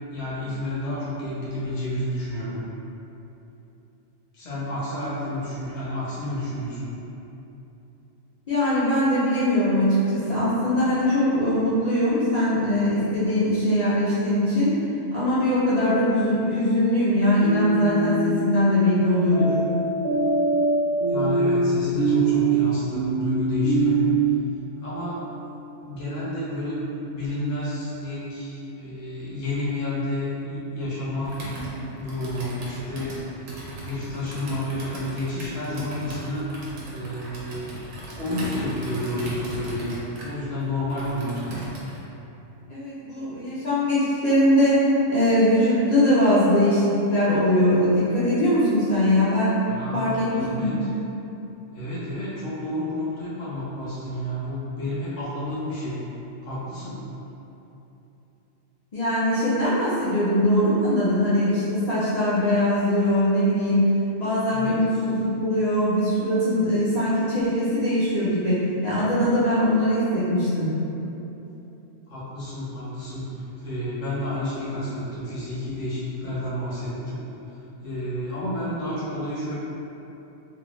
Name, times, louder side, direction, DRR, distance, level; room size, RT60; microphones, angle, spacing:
voice 1, 0.1-2.6 4.3-6.9 21.1-24.0 24.8-25.2 25.8-31.4 32.0-33.4 33.8-36.5 36.9-39.9 40.2-41.4 49.7-50.9 51.7-56.0 56.4-57.0 64.5-64.8 72.1-77.3 77.8-79.5, left 1 dB, 70° left, -9 dB, 1.1 m, -30 dB
voice 2, 8.5-14.7 15.1-19.5 42.7-44.8 45.1-49.6 49.9-50.3 50.6-50.7 58.9-63.8 64.2-70.7, left 1 dB, 50° left, -11 dB, 0.5 m, -21 dB
sound 1, 17.4-18.2 19.3-24.4, right 3 dB, 45° right, 0.7 m, -22 dB
Computer keyboard, 31.2-42.0, right 1 dB, 90° right, 1.1 m, -37 dB
3.0 x 2.2 x 3.0 m, 3.0 s
omnidirectional pair, 1.3 m